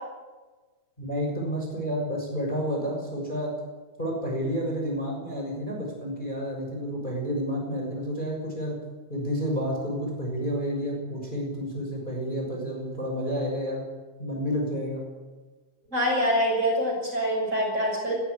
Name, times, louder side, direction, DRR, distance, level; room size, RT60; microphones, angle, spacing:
voice 1, 1.0-3.5 4.0-8.8 9.1-13.9 14.2-15.0, equal, 15° left, -1 dB, 6.1 m, -30 dB
voice 2, 15.9-18.2, equal, 20° right, -1 dB, 6.8 m, -25 dB
21.0 x 15.5 x 9.8 m, 1.3 s
omnidirectional pair, 3.5 m